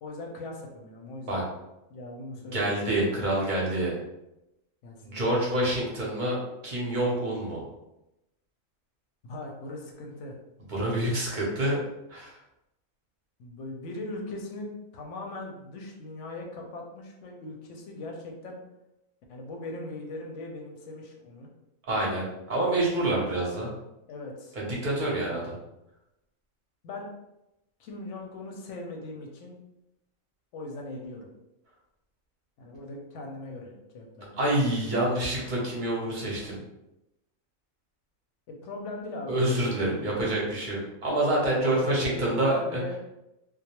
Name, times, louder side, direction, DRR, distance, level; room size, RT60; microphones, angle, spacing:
voice 1, 0.0-1.5 1.9-2.8 4.8-5.2 9.2-10.4 13.4-18.6 19.3-21.5 23.2-23.3 24.1-24.6 25.3-25.4 26.8-27.1 27.8-29.6 30.5-31.3 32.6-34.3 38.5-40.1 41.6-43.0, left 2 dB, 70° left, 0 dB, 0.8 m, -39 dB
voice 2, 2.4-4.0 5.0-6.4 6.6-7.6 10.7-11.8 12.1-12.4 21.9-23.7 24.6-25.5 34.4-36.6 39.3-42.8, right 1 dB, 50° right, -4 dB, 0.7 m, -27 dB
2.3 x 2.1 x 2.8 m, 0.90 s
omnidirectional pair, 1.4 m